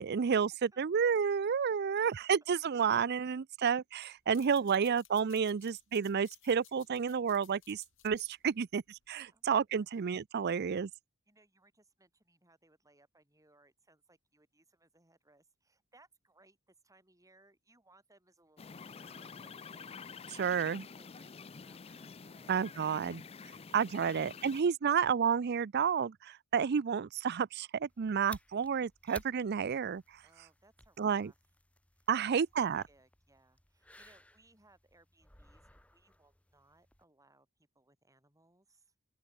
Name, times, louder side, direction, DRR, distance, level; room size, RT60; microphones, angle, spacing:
voice 1, 0.0-10.9 20.3-20.9 22.5-23.2 23.7-30.0 31.0-31.3 32.1-32.8, right 7 dB, 50° right, 0.4 m, -31 dB
voice 2, 1.7-2.2 4.6-4.9 9.2-9.9 10.4-10.6 11.3-20.3 21.0-22.7 23.6-23.7 30.2-31.4 31.9-37.5 37.7-38.9, right 2 dB, 15° right, 7.5 m, -67 dB
sound 1, 4.2-9.4, left 15 dB, 60° left, 5.5 m, -61 dB
sound 2, 18.6-24.6, left 5 dB, 25° left, 0.5 m, -49 dB
sound 3, 27.9-37.0, left 1 dB, 5° left, 1.4 m, -57 dB
open air
head